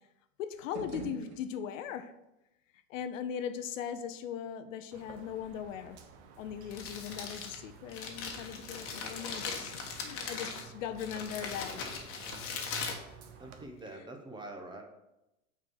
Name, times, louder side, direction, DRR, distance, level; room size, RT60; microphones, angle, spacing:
voice 1, 0.4-2.1 2.9-6.0 6.4-11.8, left 8 dB, 60° left, 10 dB, 0.7 m, -39 dB
sound 1, 0.6-2.0, right 4 dB, 70° right, 2.1 m, -45 dB
sound 2, 4.9-13.6, right 5 dB, 50° right, 1.2 m, -54 dB
Crumpling crinkling, 6.5-13.8, left 5 dB, 30° left, 1.4 m, -40 dB
voice 2, 12.2-12.8 13.4-14.8, right 2 dB, 10° right, 3 dB, 0.9 m, -47 dB
6.0 x 4.6 x 6.4 m, 0.92 s
hypercardioid pair, 120°, 44 cm